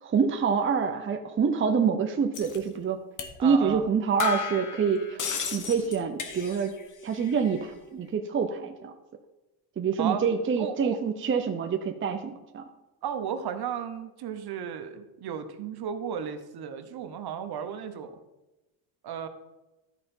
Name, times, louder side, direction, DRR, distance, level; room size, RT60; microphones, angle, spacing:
voice 1, 0.0-3.0 3.4-5.2 5.5-6.7 7.0-8.9 9.8-12.6, right 6 dB, 25° right, 5 dB, 0.7 m, -26 dB
sound 1, 2.3-2.6 3.2-3.4 3.7-3.8 4.2-6.8 7.1-7.7, left 6 dB, 40° left, 1.2 m, -34 dB
voice 2, 3.4-3.8 10.0-10.2 10.6-11.0 13.0-18.2 19.0-19.3, right 8 dB, 50° right, 8 dB, 1.1 m, -34 dB
13.0 x 5.1 x 4.4 m, 1.0 s
cardioid pair, 100°, 49 cm